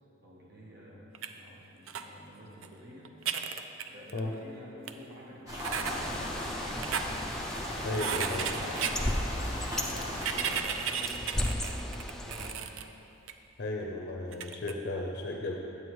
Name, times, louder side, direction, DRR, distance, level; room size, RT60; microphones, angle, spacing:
voice 1, 0.2-3.1 3.9-7.0 7.8-12.7, equal, 50° right, -5 dB, 1.2 m, -50 dB
sound 1, 1.1-1.3 1.9-2.0 2.6-2.7 3.0-4.3 4.9-5.0 5.6-5.9 6.7-7.1 7.9-9.0 10.1-12.8 13.3-13.4 14.3-14.7, right 7 dB, 70° right, 0.4 m, -34 dB
sound 2, 5.5-10.6, left 1 dB, 15° right, 1.2 m, -37 dB
Bird, 5.8-12.5, left 1 dB, 5° left, 0.3 m, -36 dB
voice 2, 7.8-8.5 13.6-15.5, left 2 dB, 50° left, 0 dB, 0.5 m, -34 dB
9.4 x 7.9 x 3.1 m, 2.9 s
head